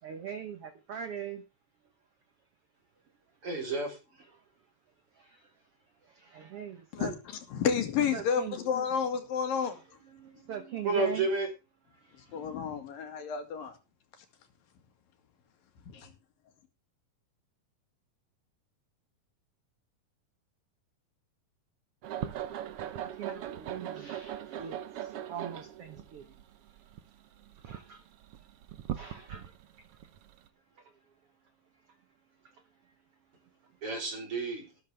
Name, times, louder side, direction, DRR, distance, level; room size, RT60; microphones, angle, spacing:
voice 1, 0.0-1.4 4.3-4.4 5.1-5.6 6.0-7.1 8.1-8.6 9.6-11.3 11.9-12.5 22.8-26.4 27.6-28.0 28.9-29.6 30.7-31.0 31.7-32.0 32.4-32.9, right 8 dB, 60° right, 1.6 m, -43 dB
voice 2, 3.4-4.2 10.8-11.5 33.8-34.7, right 3 dB, 40° right, 4.6 m, -31 dB
voice 3, 7.5-9.8 12.3-13.8 15.8-16.1, left 7 dB, 80° left, 3.8 m, -30 dB
sound 1, 22.0-30.5, right 11 dB, 75° right, 1.3 m, -40 dB
13.5 x 13.0 x 3.4 m
omnidirectional pair, 3.9 m